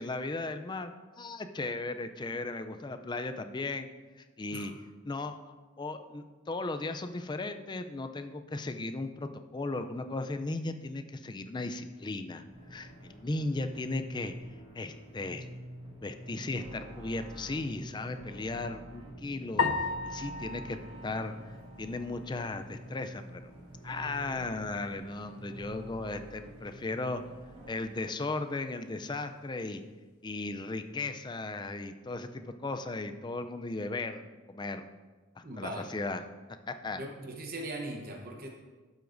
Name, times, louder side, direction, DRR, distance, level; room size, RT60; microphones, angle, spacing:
voice 1, 0.0-3.9 4.2-4.7 5.0-12.4 12.7-14.3 14.7-15.5 16.0-20.8 21.0-21.3 21.8-23.4 23.8-27.2 27.7-29.8 30.2-34.9 35.4-36.2 36.7-37.0, left 2 dB, 20° left, 8 dB, 0.4 m, -36 dB
sound 1, 12.5-27.8, right 1 dB, 25° right, 1.5 m, -48 dB
sound 2, 19.6-22.1, left 4 dB, 90° left, 0.6 m, -34 dB
voice 2, 35.4-35.9 37.0-38.5, right 1 dB, 45° right, 2 dB, 0.9 m, -39 dB
12.0 x 7.9 x 2.6 m, 1.3 s
head